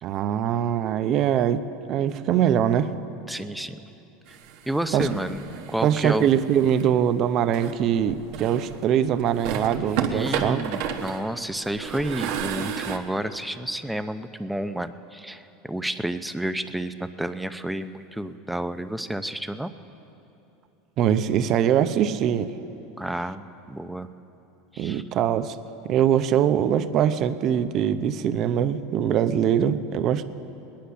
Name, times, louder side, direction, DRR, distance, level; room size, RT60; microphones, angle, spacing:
voice 1, 0.0-2.9 4.9-5.1 5.8-10.6 21.0-22.5 24.8-25.6 25.9-30.2, right 9 dB, 45° right, 11 dB, 0.7 m, -22 dB
voice 2, 3.3-3.9 4.3-4.4 4.7-6.3 10.1-19.7 23.0-24.1 24.7-25.0, right 1 dB, 5° right, 10 dB, 0.6 m, -30 dB
sound 1, 4.3-6.9 7.5-8.8 9.2-13.0, right 8 dB, 65° right, 1.2 m, -32 dB
20.0 x 10.5 x 5.7 m, 3.0 s
supercardioid pair, 110°, 0 cm